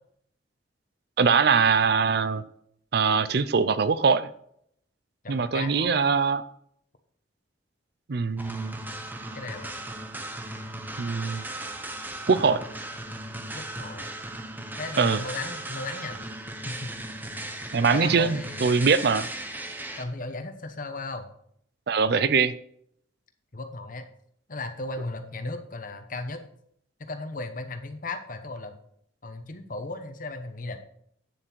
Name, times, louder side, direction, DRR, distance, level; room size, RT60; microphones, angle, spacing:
voice 1, 1.2-2.4 2.9-4.3 5.3-6.4 8.1-8.8 11.0-11.4 12.3-12.6 15.0-15.2 17.7-19.3 21.9-22.5, right 5 dB, 55° right, 15 dB, 0.5 m, -22 dB
voice 2, 5.2-6.2 9.3-9.7 13.5-14.1 14.7-16.2 16.6-16.9 17.9-18.7 20.0-21.3 23.5-24.1 24.5-26.4 27.0-28.7 29.2-30.8, left 2 dB, 45° left, 8 dB, 1.1 m, -36 dB
sound 1, 8.4-20.0, right 1 dB, 10° right, 0.8 m, -37 dB
9.1 x 7.4 x 4.5 m, 0.68 s
head